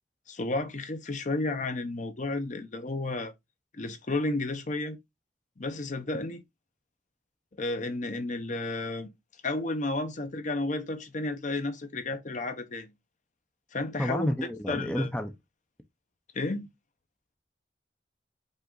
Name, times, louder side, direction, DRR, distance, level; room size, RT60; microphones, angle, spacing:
voice 1, 0.3-3.3 3.7-5.0 5.6-6.4 7.5-9.1 9.4-12.9 13.7-14.3 14.7-15.1 16.3-16.7, left 2 dB, 45° left, 0.8 m, -32 dB
voice 2, 14.0-15.3, equal, 5° left, 0.5 m, -30 dB
5.4 x 2.4 x 3.8 m
head